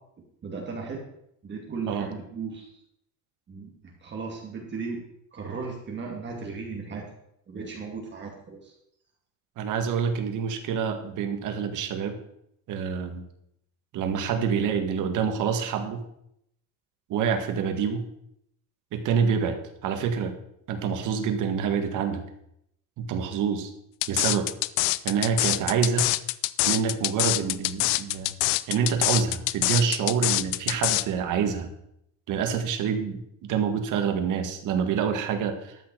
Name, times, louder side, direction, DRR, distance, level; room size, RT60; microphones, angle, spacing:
voice 1, 0.4-1.0 1.4-2.7 3.5-5.0 5.3-7.0 7.5-8.7, right 4 dB, 25° right, -1 dB, 2.4 m, -36 dB
voice 2, 9.6-12.2 12.7-13.2 13.9-16.0 17.1-18.1 18.9-20.3 20.7-22.2 23.0-23.7 24.1-24.5 25.0-26.1 26.7-28.3 28.7-31.7 32.3-35.8, right 6 dB, 50° right, 6 dB, 1.9 m, -27 dB
sound 1, 24.0-31.0, left 20 dB, 85° left, 0.7 m, -25 dB
13.0 x 5.9 x 7.8 m, 0.76 s
cardioid pair, 155°, 40 cm